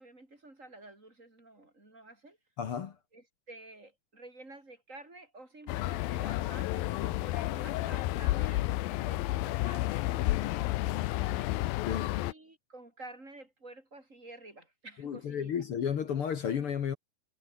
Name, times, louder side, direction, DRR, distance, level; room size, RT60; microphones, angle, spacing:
voice 1, 0.0-2.4 3.1-8.7 9.0-11.5 12.2-15.5, right 2 dB, 20° right, 5.6 m, -51 dB
voice 2, 2.6-2.9 10.2-10.4 11.9-12.1 15.0-16.9, left 8 dB, 55° left, 1.6 m, -32 dB
sound 1, 5.7-12.3, left 17 dB, 85° left, 2.6 m, -31 dB
omnidirectional pair, 4.2 m